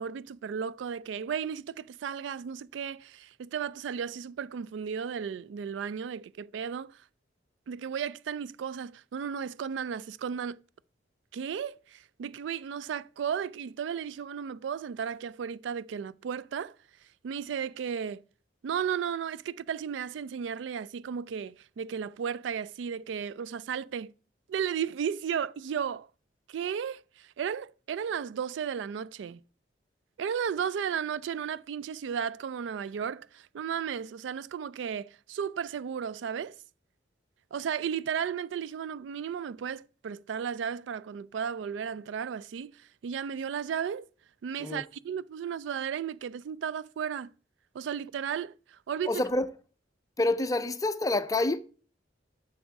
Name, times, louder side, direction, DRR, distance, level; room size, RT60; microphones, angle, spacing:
voice 1, 0.0-7.0 7.7-10.6 11.3-16.7 17.2-18.2 18.6-24.1 24.5-26.1 26.5-29.4 30.2-36.6 37.5-44.1 44.4-47.3 47.7-49.2, right 7 dB, 80° right, 0.3 m, -34 dB
voice 2, 49.0-49.5 50.2-51.6, left 2 dB, 20° left, 0.5 m, -27 dB
7.1 x 6.3 x 4.6 m
head